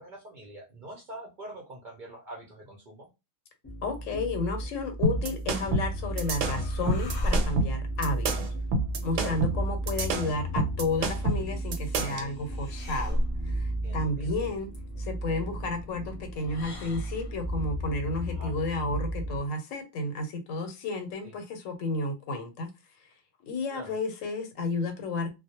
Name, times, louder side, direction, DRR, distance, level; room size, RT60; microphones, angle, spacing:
voice 1, 0.0-3.1 5.1-5.3 9.2-9.4 13.8-14.3 18.3-18.6 21.2-21.3 23.7-24.0, right 1 dB, 55° right, -1 dB, 0.6 m, -44 dB
sound 1, 3.6-19.4, right 1 dB, 15° left, 0.6 m, -34 dB
voice 2, 3.8-8.5 9.0-14.7 15.0-22.7 23.5-25.3, left 2 dB, 85° left, 6 dB, 1.0 m, -32 dB
sound 2, 5.0-12.3, right 2 dB, 75° right, 0.9 m, -28 dB
sound 3, 5.7-17.5, equal, 40° left, 0.8 m, -38 dB
2.2 x 2.0 x 2.8 m, 0.25 s
omnidirectional pair, 1.3 m